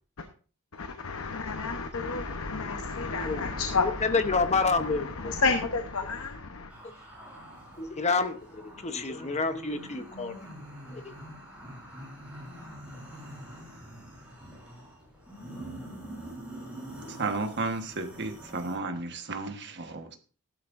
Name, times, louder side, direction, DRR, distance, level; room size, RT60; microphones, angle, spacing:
voice 1, 0.7-6.7, left 4 dB, 65° left, 1.0 m, -31 dB
voice 2, 3.1-3.5 3.8-5.3 7.8-10.3 10.9-11.1, left 4 dB, 30° left, 1.0 m, -29 dB
sound 1, 6.7-18.7, equal, 5° right, 7.6 m, -45 dB
voice 3, 17.1-20.2, right 3 dB, 55° right, 1.4 m, -33 dB
15.5 x 11.5 x 2.6 m
head